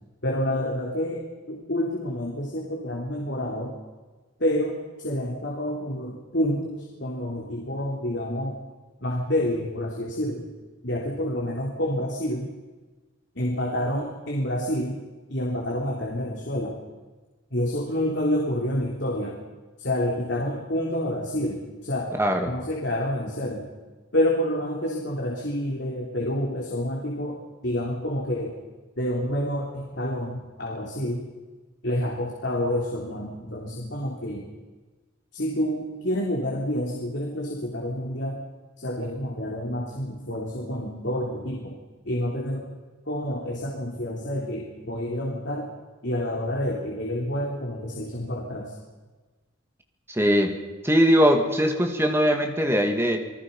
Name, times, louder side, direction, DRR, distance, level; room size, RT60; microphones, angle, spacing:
voice 1, 0.2-1.2 1.5-3.7 4.4-8.5 9.0-10.5 10.8-12.5 13.4-15.0 15.3-16.7 17.5-19.3 19.8-22.1 22.5-23.7 24.1-27.4 27.6-28.5 29.0-31.2 31.8-34.4 35.3-38.4 38.8-41.7 42.1-42.7 43.1-45.7 46.0-48.6, left 1 dB, 60° left, -2 dB, 3.5 m, -28 dB
voice 2, 22.2-22.5 50.1-50.6 50.8-53.2, equal, 10° right, 4 dB, 2.3 m, -21 dB
28.5 x 19.5 x 5.6 m, 1.3 s
head